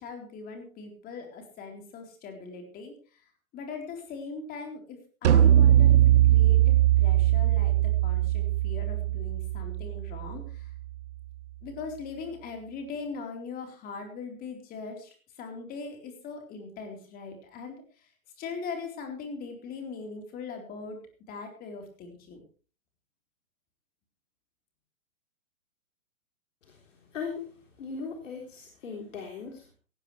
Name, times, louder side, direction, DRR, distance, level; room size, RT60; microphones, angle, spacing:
voice 1, 0.0-3.3 3.5-10.7 11.6-18.1 18.4-21.0 21.3-22.4, left 4 dB, 20° left, 3 dB, 4.0 m, -40 dB
sound 1, 5.2-10.7, right 12 dB, 55° right, 0.8 m, -21 dB
voice 2, 27.1-27.5 27.8-29.7, left 5 dB, 60° left, 1 dB, 3.8 m, -38 dB
18.0 x 15.0 x 3.3 m, 0.38 s
hypercardioid pair, 140°, 42 cm